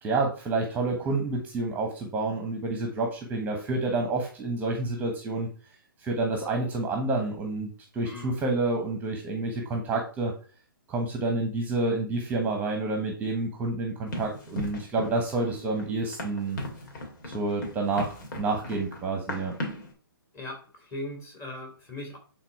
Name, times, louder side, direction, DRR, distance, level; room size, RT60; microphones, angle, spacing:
voice 1, 0.0-5.5 6.0-10.3 10.9-16.6 17.2-19.5, right 3 dB, 15° right, 2 dB, 1.2 m, -29 dB
voice 2, 8.0-8.4 20.3-22.2, left 1 dB, 20° left, 2 dB, 2.6 m, -39 dB
Run, 14.1-19.9, left 1 dB, 55° left, 2.7 m, -37 dB
8.7 x 3.8 x 4.7 m, 0.39 s
hypercardioid pair, 140°, 12 cm